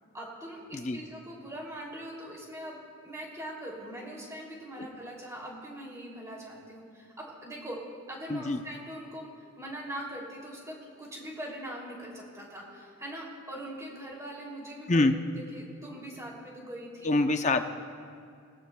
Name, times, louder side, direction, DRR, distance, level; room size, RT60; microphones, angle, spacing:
voice 1, 0.1-2.8 3.0-7.8 8.1-15.0 15.5-17.1, right 1 dB, 15° right, -3 dB, 2.9 m, -42 dB
voice 2, 8.3-8.6 14.9-15.2 17.0-17.7, left 2 dB, 30° left, 7 dB, 0.6 m, -25 dB
23.0 x 18.5 x 2.3 m, 2.3 s
head